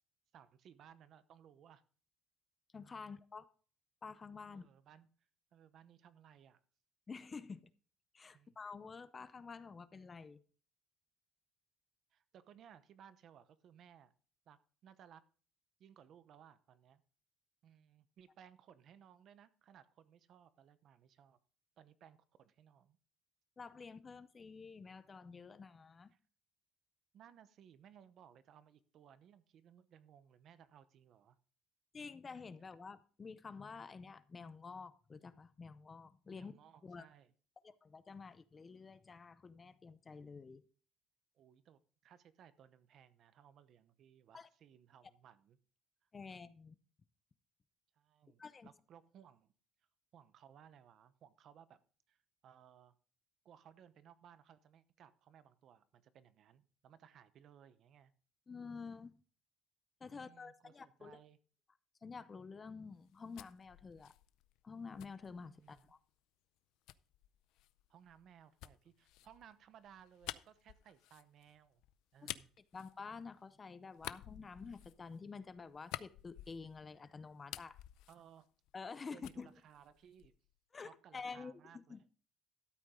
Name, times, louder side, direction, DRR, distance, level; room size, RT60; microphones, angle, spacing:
voice 1, 0.3-1.8 4.5-5.1 5.5-6.6 8.3-8.6 12.1-14.1 14.5-15.2 15.8-17.0 17.6-21.4 21.8-23.0 26.1-26.2 27.1-31.4 36.3-37.3 41.3-45.6 46.3-46.4 48.0-49.5 50.1-51.8 52.1-53.0 53.4-58.1 60.1-61.4 65.6-65.9 67.9-71.8 72.1-72.5 78.1-78.5 79.1-80.3 80.8-82.0, right 9 dB, 45° right, 0.8 m, -62 dB
voice 2, 2.7-3.5 4.0-4.7 7.1-7.7 8.1-10.4 23.6-26.1 31.9-36.6 36.8-37.1 37.6-40.6 44.3-44.5 46.1-46.7 48.4-48.7 58.5-59.1 60.0-61.2 62.0-64.1 64.6-66.0 72.2-72.3 72.7-77.8 78.7-79.5 80.7-82.0, left 5 dB, 20° left, 0.6 m, -49 dB
sound 1, 63.0-66.0 66.9-73.5 73.9-77.0 77.3-79.0 79.2-80.5, left 16 dB, 80° left, 0.5 m, -51 dB
13.0 x 8.5 x 3.7 m
cardioid pair, 160°, 0 cm